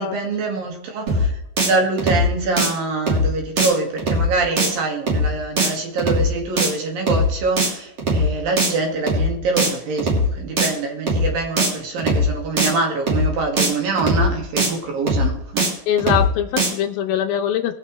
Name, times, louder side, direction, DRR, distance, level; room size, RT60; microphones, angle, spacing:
voice 1, 0.0-15.7, right 3 dB, 65° right, 3.5 m, -25 dB
sound 1, 1.1-1.3 1.6-1.7 2.0-2.3 2.6-2.7 3.1-3.3 3.6-3.7 4.0-4.3 4.6-4.7 5.1-5.3 5.6-5.7 6.0-6.3 6.6-6.7 7.1-7.3 7.6-7.7 8.0-8.3 8.6-8.7 9.1-9.3 9.6-9.7 10.0-10.3 10.6-10.7 11.1-11.3 11.6-11.7 12.0-12.3 12.6-12.7 13.1-13.3 13.6-13.7 14.0-14.3 14.6-14.7 15.1-15.3 15.6-15.7 16.0-16.3 16.6-16.7, equal, 40° right, 3.5 m, -19 dB
voice 2, 15.9-17.7, left 9 dB, 75° left, 2.4 m, -22 dB
22.0 x 7.7 x 3.2 m
omnidirectional pair, 4.7 m